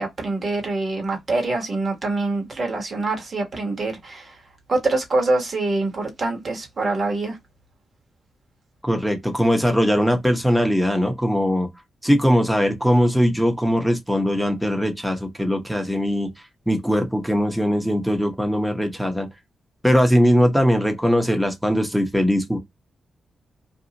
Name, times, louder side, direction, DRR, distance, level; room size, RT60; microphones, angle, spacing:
voice 1, 0.0-4.3 4.7-7.4, right 2 dB, 45° right, 1.2 m, -25 dB
voice 2, 8.8-11.7 12.0-16.3 16.7-19.3 19.8-22.6, equal, 5° right, 0.8 m, -20 dB
2.6 x 2.3 x 2.8 m
cardioid pair, 80°, 0 cm